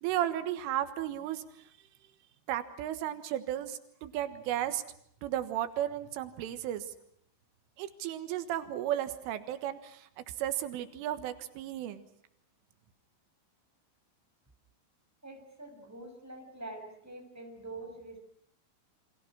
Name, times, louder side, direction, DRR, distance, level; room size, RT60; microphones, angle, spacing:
voice 1, 0.0-1.4 2.5-4.8 5.2-6.9 7.8-10.1 10.4-12.1, right 12 dB, 90° right, 10 dB, 3.9 m, -34 dB
voice 2, 15.2-18.2, right 2 dB, 5° right, 2 dB, 6.1 m, -45 dB
29.0 x 26.5 x 6.2 m, 0.66 s
omnidirectional pair, 5.6 m